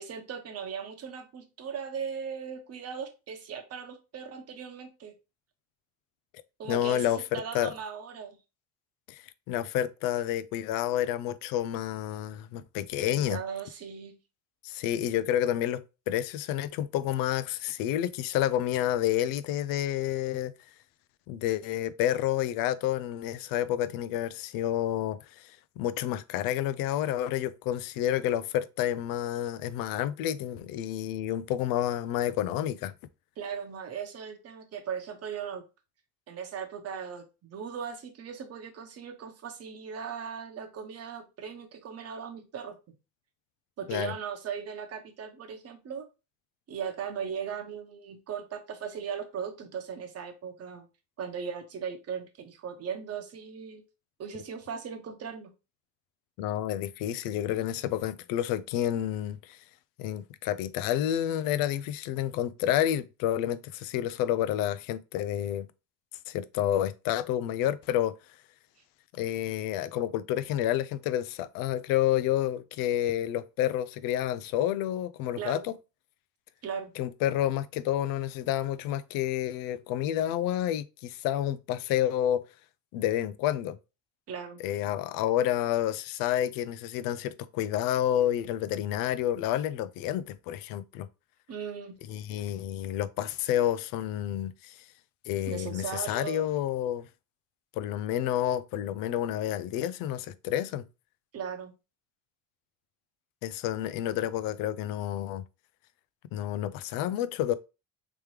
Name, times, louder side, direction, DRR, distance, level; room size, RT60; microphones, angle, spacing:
voice 1, 0.0-5.1 6.6-8.4 13.0-14.2 33.4-35.6 36.3-43.0 43.8-46.1 46.7-50.9 51.2-53.8 54.2-55.5 75.4-75.7 76.6-76.9 84.3-84.6 91.5-92.0 95.5-96.5 101.3-101.7, right 7 dB, 45° right, 0.9 m, -38 dB
voice 2, 6.7-7.7 9.1-13.4 14.6-20.5 21.3-32.9 43.9-44.1 56.4-59.6 60.0-65.7 66.3-68.1 69.1-75.7 77.0-82.4 82.9-83.8 84.6-91.1 92.1-94.7 95.3-97.1 97.8-100.8 103.4-105.4 106.3-107.5, left 11 dB, 75° left, 0.5 m, -29 dB
3.4 x 3.1 x 3.1 m
cardioid pair, 110°, 34 cm